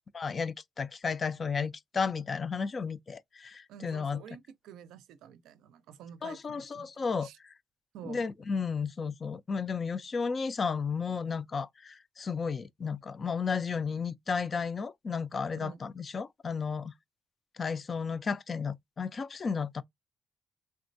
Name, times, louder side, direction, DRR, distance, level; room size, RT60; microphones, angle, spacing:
voice 1, 0.1-4.2 6.2-7.3 8.0-16.9 17.6-19.8, left 5 dB, 40° left, 0.3 m, -33 dB
voice 2, 3.7-6.9 7.2-7.4 7.9-8.3 15.5-15.8, right 9 dB, 90° right, 0.4 m, -49 dB
3.4 x 2.1 x 2.6 m
cardioid pair, 90°, 0 cm